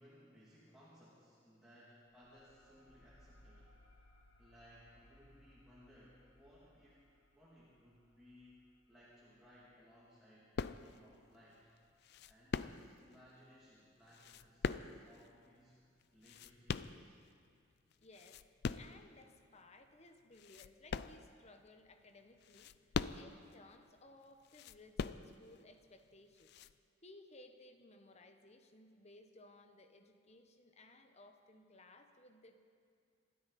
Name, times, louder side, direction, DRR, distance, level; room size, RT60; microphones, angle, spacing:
voice 1, 0.0-3.7 4.4-7.0 7.3-8.6 8.9-11.7 12.3-15.8 16.1-17.1, equal, ahead, -9 dB, 2.6 m, -63 dB
sound 1, 2.1-11.3, left 1 dB, 80° left, 1.9 m, -67 dB
sound 2, 10.6-11.2 12.0-13.1 14.1-15.3 16.0-17.4 17.9-19.0 19.6-19.7 20.3-21.6 22.4-23.5 24.4-25.6 26.4-26.7, left 5 dB, 55° left, 0.4 m, -41 dB
voice 2, 18.0-18.4 18.7-22.7 23.1-26.5 27.0-32.6, left 2 dB, 30° left, 6 dB, 1.0 m, -60 dB
26.5 x 12.5 x 4.2 m, 2.3 s
head